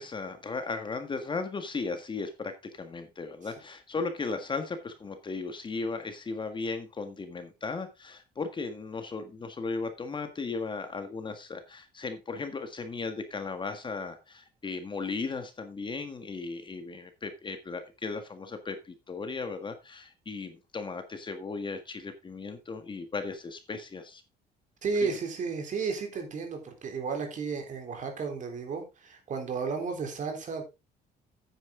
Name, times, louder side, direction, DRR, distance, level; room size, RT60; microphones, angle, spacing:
voice 1, 0.0-24.2 25.0-25.1, left 4 dB, 30° left, 8 dB, 1.6 m, -36 dB
voice 2, 24.8-30.6, right 5 dB, 50° right, 4 dB, 3.8 m, -33 dB
9.2 x 9.2 x 3.7 m, 0.26 s
cardioid pair, 110°, 17 cm